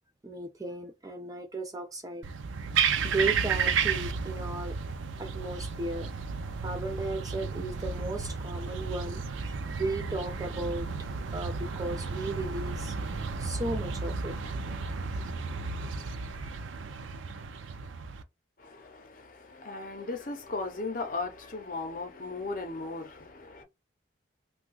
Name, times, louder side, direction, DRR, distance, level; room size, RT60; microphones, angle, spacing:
voice 1, 0.2-2.2 3.0-4.8 5.2-6.1 6.6-10.9 11.3-13.0 13.4-14.4, right 2 dB, 20° right, 0.4 m, -35 dB
sound 1, 2.2-18.2, right 5 dB, 85° right, 0.5 m, -33 dB
sound 2, 10.3-16.1, equal, 5° left, 1.0 m, -47 dB
voice 2, 18.6-23.6, left 3 dB, 45° left, 0.7 m, -37 dB
2.8 x 2.3 x 3.6 m
head